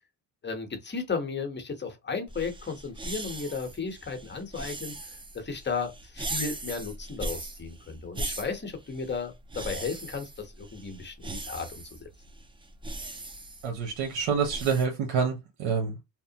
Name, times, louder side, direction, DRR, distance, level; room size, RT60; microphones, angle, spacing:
voice 1, 0.4-12.1, left 5 dB, 25° left, 0.9 m, -35 dB
sound 1, 2.3-14.9, right 2 dB, 10° right, 0.3 m, -39 dB
voice 2, 13.6-16.0, right 6 dB, 90° right, 0.9 m, -27 dB
2.9 x 2.0 x 2.7 m
cardioid pair, 95°, 47 cm